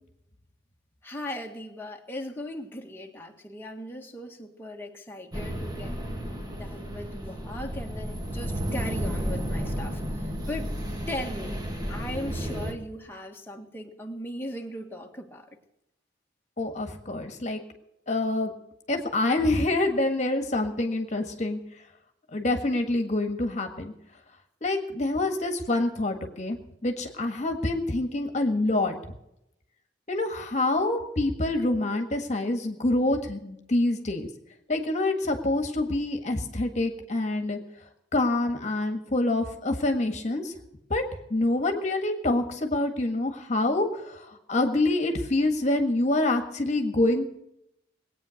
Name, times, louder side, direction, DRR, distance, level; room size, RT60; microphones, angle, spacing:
voice 1, 1.0-6.0 6.5-10.7 11.1-11.6 11.9-15.5, left 1 dB, 15° left, 0 dB, 1.7 m, -38 dB
sound 1, 5.3-12.7, equal, 25° right, 2.0 m, -32 dB
voice 2, 16.6-17.6 18.1-18.5 18.9-21.6 22.3-23.9 24.6-29.0 30.1-34.3 34.7-37.6 38.1-40.5 40.9-41.0 41.3-47.3, left 2 dB, 40° left, 5 dB, 1.6 m, -26 dB
20.5 x 9.0 x 6.4 m, 0.81 s
head